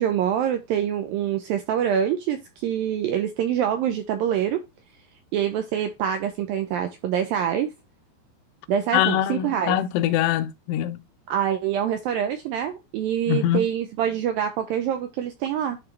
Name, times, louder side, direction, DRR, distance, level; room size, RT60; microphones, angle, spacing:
voice 1, 0.0-4.6 5.3-7.7 8.7-9.8 11.3-15.8, right 9 dB, 90° right, 2.1 m, -25 dB
voice 2, 8.9-11.0 13.3-13.7, left 11 dB, 90° left, 2.8 m, -23 dB
11.0 x 3.7 x 3.2 m
omnidirectional pair, 4.8 m